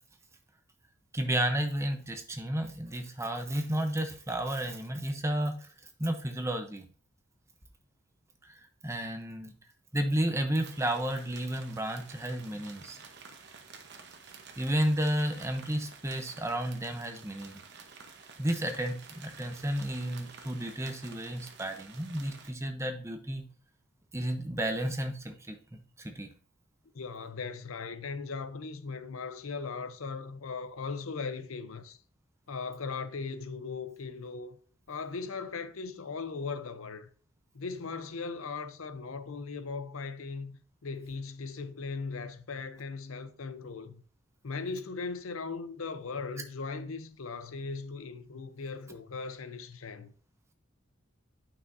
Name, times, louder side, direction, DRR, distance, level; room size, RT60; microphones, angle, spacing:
voice 1, 1.1-5.7 6.0-6.9 8.4-9.5 9.9-13.0 14.6-17.6 18.4-23.5 24.1-26.3, right 1 dB, 15° right, 0.8 m, -32 dB
sound 1, 10.6-22.5, right 5 dB, 55° right, 1.1 m, -51 dB
voice 2, 26.9-32.0 32.5-34.6 34.9-37.1 37.5-44.0 44.4-50.1, left 4 dB, 85° left, 0.7 m, -38 dB
9.3 x 5.7 x 2.7 m
head